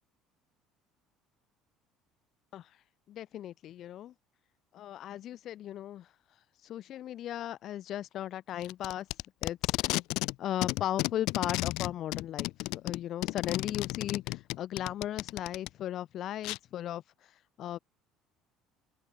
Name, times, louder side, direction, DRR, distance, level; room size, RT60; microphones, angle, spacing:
voice 1, 3.1-4.1 4.7-6.1 6.6-9.1 9.4-9.6 9.8-9.9 10.4-17.0 17.6-17.8, left 12 dB, 55° left, 3.9 m, -36 dB
Packing tape duct tape, 8.6-10.4 10.6-15.7 16.4-16.6, left 21 dB, 75° left, 4.8 m, -33 dB
open air
cardioid pair, 110°, 0 cm